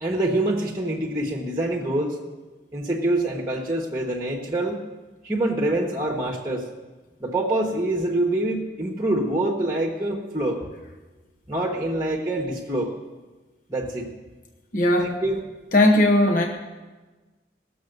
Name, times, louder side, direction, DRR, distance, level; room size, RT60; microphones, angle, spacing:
voice 1, 0.0-2.2 2.7-4.8 5.2-6.7 7.2-10.6 11.5-12.9 13.7-14.1 15.0-15.5, right 1 dB, 15° right, -1 dB, 1.1 m, -25 dB
voice 2, 14.7-15.2 15.7-16.5, left 1 dB, 50° left, 2 dB, 0.9 m, -18 dB
17.5 x 6.9 x 6.6 m, 1.2 s
head